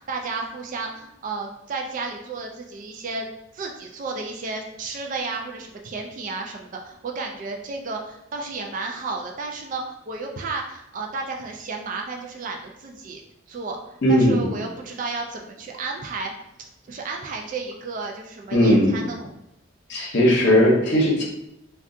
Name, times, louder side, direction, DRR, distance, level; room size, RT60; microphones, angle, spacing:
voice 1, 0.0-13.2 13.5-16.3 16.9-19.3, right 3 dB, 40° right, 2 dB, 0.3 m, -32 dB
voice 2, 14.0-14.5 18.5-19.1 19.9-21.2, equal, 55° left, -2 dB, 0.7 m, -18 dB
2.4 x 2.3 x 3.6 m, 0.83 s
head